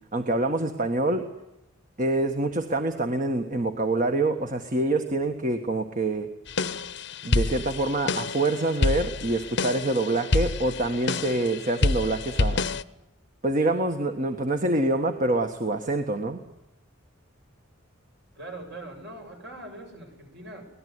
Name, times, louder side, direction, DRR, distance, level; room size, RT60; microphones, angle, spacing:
voice 1, 0.1-1.3 2.0-6.3 7.2-12.7 13.4-16.4, right 2 dB, 40° right, 6 dB, 1.6 m, -26 dB
sound 1, 6.5-12.8, left 3 dB, 60° left, 0.9 m, -28 dB
voice 2, 18.3-20.7, right 2 dB, 60° right, 3 dB, 7.5 m, -41 dB
24.5 x 18.5 x 9.7 m, 0.91 s
head